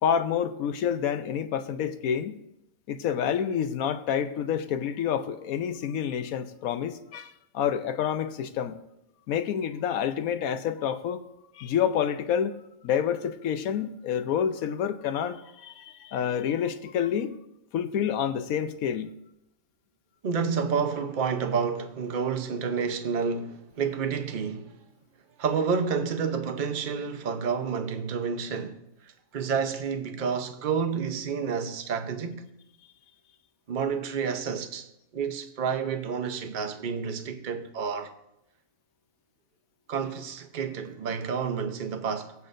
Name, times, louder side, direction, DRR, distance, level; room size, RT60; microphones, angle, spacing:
voice 1, 0.0-2.4 2.9-8.8 9.3-11.2 11.5-12.6 12.8-17.4 17.7-19.1, left 8 dB, 85° left, 1.1 m, -28 dB
voice 2, 20.2-24.8 25.4-32.5 33.7-34.9 35.1-38.1 39.9-42.3, right 6 dB, 40° right, 0.8 m, -29 dB
18.5 x 8.2 x 2.6 m
omnidirectional pair, 1.5 m